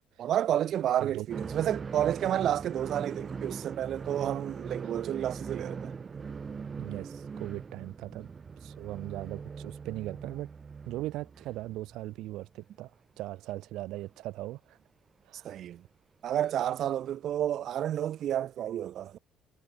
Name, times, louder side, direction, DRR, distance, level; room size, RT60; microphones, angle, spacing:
voice 1, 0.2-5.9 15.4-15.8 16.2-19.2, right 11 dB, 50° right, 0.9 m, -30 dB
sound 1, 1.3-12.3 12.6-12.7 13.9-14.0 15.5-15.6 17.1-17.2, right 5 dB, 25° right, 2.5 m, -41 dB
voice 2, 6.8-8.3 8.6-10.5 10.8-12.9 13.2-14.8 15.2-15.5, right 16 dB, 75° right, 4.1 m, -39 dB
cardioid pair, 165°, 0 cm